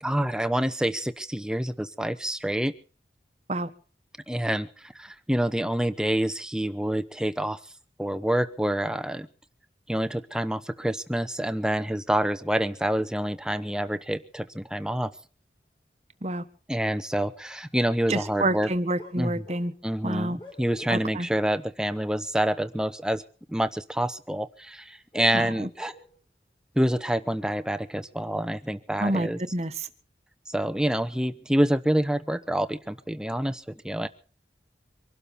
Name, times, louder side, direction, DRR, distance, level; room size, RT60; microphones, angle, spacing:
voice 1, 0.0-2.7 4.3-7.6 8.0-9.3 9.9-15.1 16.7-18.7 19.2-19.4 19.8-23.2 23.5-25.9 26.8-29.4 30.5-34.1, right 1 dB, 5° right, 0.9 m, -27 dB
sound 1, 15.5-15.6 16.1-16.6 17.0-17.1 19.0-21.2 21.5-21.6 22.7-22.8 23.1-23.4 24.6-26.4 26.9-27.1, equal, 30° left, 5.5 m, -48 dB
voice 2, 18.1-19.7 20.0-20.4 20.9-21.3 25.3-25.7 29.0-29.9, right 1 dB, 35° right, 1.3 m, -28 dB
24.5 x 12.5 x 4.2 m
head